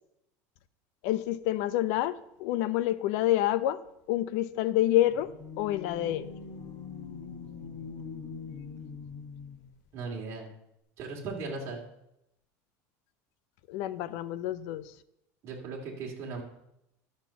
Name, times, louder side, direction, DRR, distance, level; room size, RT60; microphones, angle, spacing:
voice 1, 1.0-2.1 2.4-3.8 4.1-5.3 5.6-6.3 13.7-14.9, left 13 dB, 60° left, 15 dB, 0.6 m, -27 dB
sound 1, 5.0-9.7, left 5 dB, 35° left, 4.3 m, -42 dB
voice 2, 9.9-10.5 11.0-11.8 15.4-16.4, right 4 dB, 35° right, -1 dB, 2.6 m, -37 dB
11.5 x 6.6 x 7.0 m, 0.83 s
cardioid pair, 165°, 8 cm